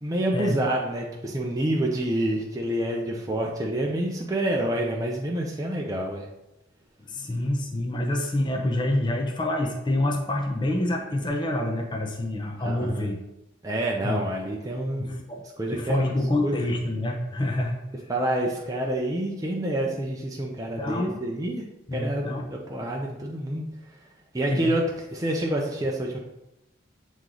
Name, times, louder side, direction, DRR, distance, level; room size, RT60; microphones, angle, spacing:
voice 1, 0.0-6.3 12.6-13.1 13.6-15.2 15.6-16.0 16.4-16.5 18.1-21.7 21.9-23.7 24.0-24.1 24.3-24.8 25.1-26.2, right 1 dB, 15° right, -1 dB, 0.5 m, -28 dB
voice 2, 7.0-13.2 14.0-14.2 15.0-15.4 15.7-17.8 20.8-21.2 21.9-22.5 24.5-24.7, left 1 dB, 25° left, 1 dB, 0.6 m, -27 dB
8.1 x 3.1 x 3.8 m, 0.93 s
head